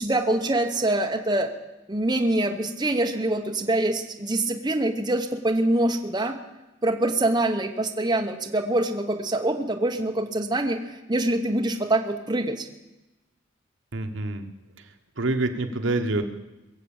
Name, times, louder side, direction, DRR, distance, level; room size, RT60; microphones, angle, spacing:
voice 1, 0.0-1.5 1.9-6.3 6.8-12.7, right 1 dB, 20° right, 4 dB, 0.9 m, -25 dB
voice 2, 13.9-14.5 15.2-16.2, right 2 dB, 70° right, 6 dB, 1.2 m, -26 dB
22.5 x 7.6 x 7.1 m, 1.0 s
head